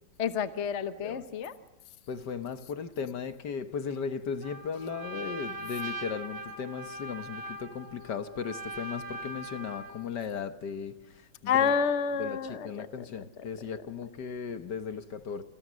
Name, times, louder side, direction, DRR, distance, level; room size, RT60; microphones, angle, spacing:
voice 1, 0.2-1.6 11.5-13.5 13.8-13.9, left 7 dB, 40° left, 1.2 m, -29 dB
voice 2, 2.1-10.9 11.6-11.7 12.2-12.4 12.7-15.4, left 6 dB, 60° left, 1.8 m, -36 dB
Trumpet, 4.4-10.1, right 1 dB, 75° right, 3.7 m, -41 dB
29.0 x 28.0 x 6.3 m
omnidirectional pair, 2.2 m